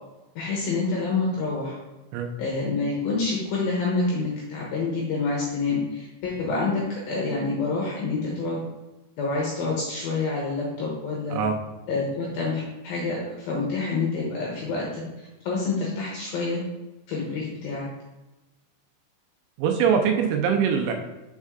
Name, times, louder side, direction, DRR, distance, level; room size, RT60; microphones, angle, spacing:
voice 1, 0.4-1.8 2.4-8.6 9.2-11.4 11.9-15.0 15.4-16.6 17.1-17.9, left 3 dB, 75° left, -3 dB, 2.3 m, -27 dB
voice 2, 19.6-20.9, right 7 dB, 80° right, 3 dB, 2.9 m, -22 dB
6.4 x 4.3 x 3.6 m, 1.1 s
omnidirectional pair, 5.5 m